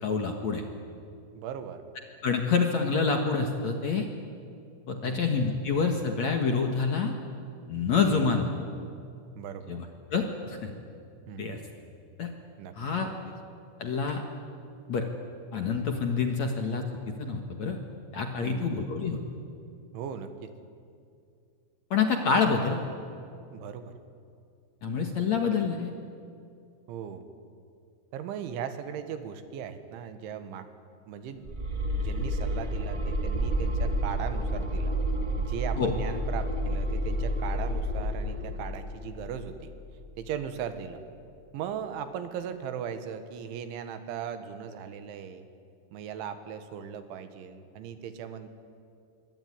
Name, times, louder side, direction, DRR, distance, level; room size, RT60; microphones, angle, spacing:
voice 1, 0.0-0.6 2.2-4.1 4.9-7.1 7.7-8.5 9.7-9.8 10.1-10.7 11.4-11.6 12.2-12.3 12.8-13.1 13.8-14.2 14.9-15.1 15.5-16.9 17.2-17.8 18.1-19.2 21.9-22.8 24.8-25.9 35.8-35.9, left 5 dB, 55° left, 4 dB, 2.1 m, -27 dB
voice 2, 1.3-1.8 5.0-5.4 8.1-8.4 9.4-9.8 11.3-11.6 12.6-12.8 18.4-18.7 19.9-20.5 23.5-23.9 26.9-27.2 28.1-30.7 31.1-31.5 31.9-35.0 35.4-39.7 40.2-41.0 41.5-45.5 45.9-48.5, right 8 dB, 90° right, 9 dB, 4.0 m, -38 dB
sound 1, 31.4-40.3, equal, 65° right, 0.4 m, -30 dB
26.0 x 22.5 x 9.8 m, 2.4 s
omnidirectional pair, 5.2 m